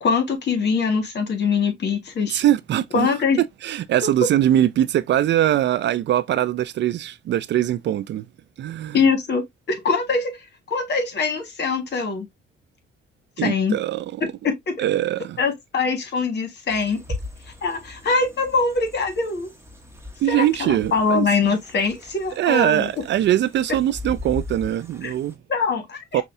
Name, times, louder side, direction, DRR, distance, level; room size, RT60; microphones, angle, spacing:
voice 1, 0.0-2.4 2.9-3.4 4.0-4.1 8.9-12.3 13.4-13.8 14.2-14.8 15.4-17.0 17.6-19.5 20.3-22.9 25.0-25.1 25.5-26.2, left 4 dB, 55° left, 1.6 m, -23 dB
voice 2, 2.3-3.1 3.6-8.2 8.6-9.0 13.4-14.1 14.8-15.4 20.2-21.3 22.4-25.3 26.1-26.2, right 12 dB, 60° right, 0.4 m, -21 dB
sound 1, 16.7-25.3, left 2 dB, 10° right, 1.1 m, -39 dB
5.5 x 2.4 x 2.6 m
cardioid pair, 80°, 21 cm